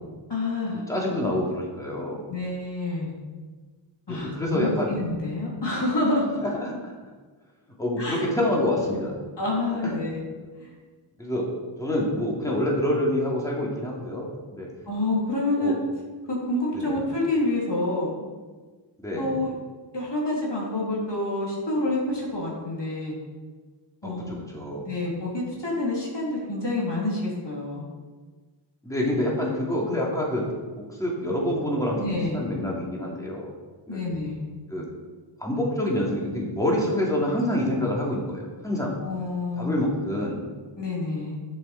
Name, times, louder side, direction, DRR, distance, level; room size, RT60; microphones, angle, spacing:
voice 1, 0.3-0.8 2.3-3.1 4.1-6.4 8.0-8.2 9.4-10.2 10.6-10.7 14.9-15.7 16.3-18.3 19.2-19.5 19.9-23.2 24.0-24.3 24.9-27.9 32.0-32.4 33.9-34.5 39.0-39.8 40.8-41.4, left 2 dB, 55° left, -4 dB, 3.5 m, -28 dB
voice 2, 0.9-2.2 4.1-4.9 6.4-6.9 7.8-9.1 9.8-9.9 11.2-11.5 11.8-14.7 15.6-15.8 16.7-17.1 19.0-19.3 24.0-24.9 28.8-30.4 30.9-32.1 32.3-33.5 33.9-34.0 34.7-34.9 35.4-38.9 39.6-40.4, left 1 dB, 5° left, -4 dB, 3.0 m, -27 dB
11.0 x 7.3 x 4.4 m, 1.4 s
cardioid pair, 50°, 50 cm